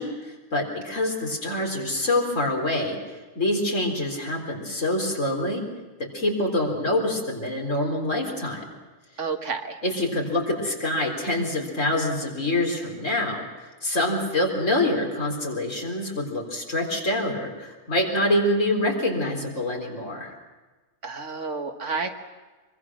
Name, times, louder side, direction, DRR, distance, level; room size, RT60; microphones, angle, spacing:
voice 1, 0.0-3.0 3.3-5.6 6.0-8.6 9.8-20.3, left 1 dB, 65° left, 1 dB, 4.4 m, -26 dB
voice 2, 9.2-9.8 21.0-22.1, right 4 dB, 60° right, 5 dB, 1.8 m, -30 dB
24.5 x 23.5 x 6.3 m, 1.3 s
omnidirectional pair, 1.4 m